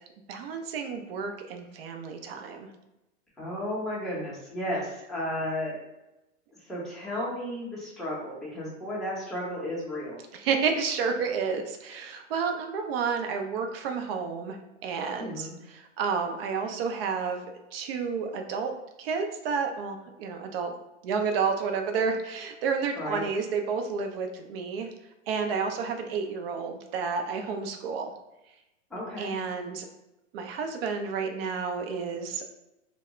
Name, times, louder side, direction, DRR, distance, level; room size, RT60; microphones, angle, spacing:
voice 1, 0.3-2.7 10.3-14.6 14.8-17.4 17.7-18.7 19.0-20.8 21.0-24.9 25.3-28.1 29.2-29.8 30.3-32.5, right 5 dB, 50° right, 5 dB, 0.5 m, -30 dB
voice 2, 3.4-5.8 6.7-10.2 15.2-15.5 22.9-23.2 28.9-29.4, left 1 dB, ahead, -7 dB, 0.7 m, -33 dB
2.0 x 2.0 x 3.5 m, 0.92 s
hypercardioid pair, 125°, 39 cm